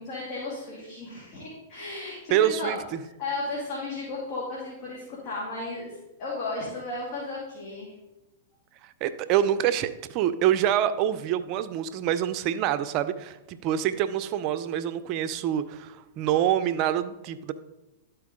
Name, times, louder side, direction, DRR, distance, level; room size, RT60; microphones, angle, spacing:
voice 1, 0.0-7.9, left 2 dB, 45° left, -5 dB, 2.3 m, -35 dB
voice 2, 2.3-2.8 9.0-17.5, right 11 dB, 45° right, 13 dB, 0.5 m, -26 dB
11.5 x 4.5 x 3.7 m, 0.98 s
hypercardioid pair, 110°, 0 cm